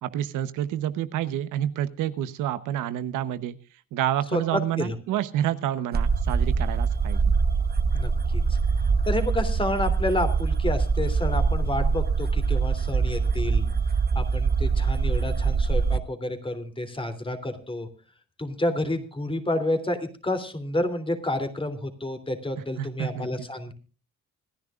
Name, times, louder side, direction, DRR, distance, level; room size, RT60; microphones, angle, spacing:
voice 1, 0.0-3.6 3.9-7.3 22.8-23.3, right 11 dB, 90° right, 12 dB, 1.0 m, -28 dB
voice 2, 4.3-4.9 7.9-8.6 9.0-13.6 14.1-17.9 18.4-23.7, left 1 dB, 15° left, 8 dB, 3.1 m, -29 dB
sound 1, 5.9-16.0, right 5 dB, 30° right, 1.1 m, -24 dB
26.5 x 10.5 x 2.5 m, 0.36 s
cardioid pair, 90°, 30 cm